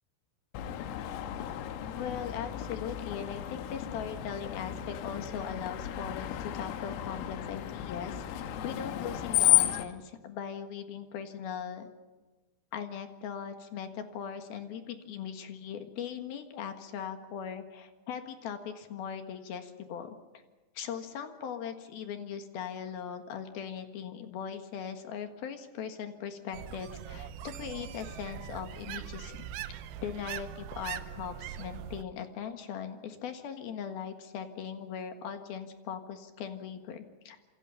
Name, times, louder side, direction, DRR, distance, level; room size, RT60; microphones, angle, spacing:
Screech, 0.5-9.9, left 14 dB, 85° left, 3.9 m, -32 dB
voice 1, 1.9-8.4 8.6-11.9 12.7-20.2 20.7-29.4 30.0-37.4, left 8 dB, 60° left, 6 dB, 2.9 m, -39 dB
sound 1, 26.5-32.0, right 10 dB, 75° right, 2.8 m, -41 dB
27.5 x 26.0 x 5.8 m, 1.2 s
omnidirectional pair, 5.9 m